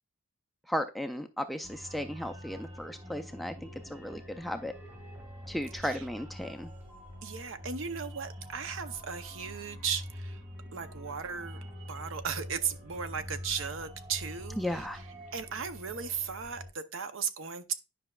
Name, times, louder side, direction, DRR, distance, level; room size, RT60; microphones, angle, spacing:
voice 1, 0.7-4.7 5.5-6.7 14.6-15.0, equal, ahead, 0.3 m, -35 dB
sound 1, 1.6-16.7, equal, 30° right, 2.3 m, -45 dB
voice 2, 7.2-10.4 10.7-11.6 11.9-14.9 15.3-17.7, right 6 dB, 60° right, 0.6 m, -36 dB
10.0 x 5.4 x 2.3 m
head